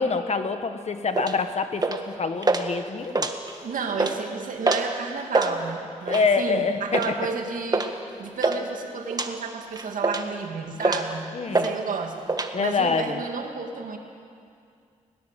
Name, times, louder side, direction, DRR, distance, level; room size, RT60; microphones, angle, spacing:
voice 1, 0.0-3.3 6.1-7.0 11.3-11.7 12.5-13.2, left 4 dB, 55° left, 8 dB, 1.6 m, -26 dB
sound 1, 1.1-1.4 1.8-2.1 2.4-2.6 3.0-3.6 3.9-4.2 4.6-4.9 5.2-5.5 6.1-6.4 6.9-7.1 7.7-7.9 8.2-8.6 9.1-9.3 9.8-10.4 10.8-11.1 11.5-11.7 12.0-12.5, right 3 dB, 30° right, 1.7 m, -24 dB
voice 2, 3.6-7.9 8.2-12.2 12.6-14.0, right 5 dB, 80° right, 3 dB, 2.4 m, -31 dB
20.5 x 19.5 x 7.7 m, 2.3 s
cardioid pair, 70°, 14 cm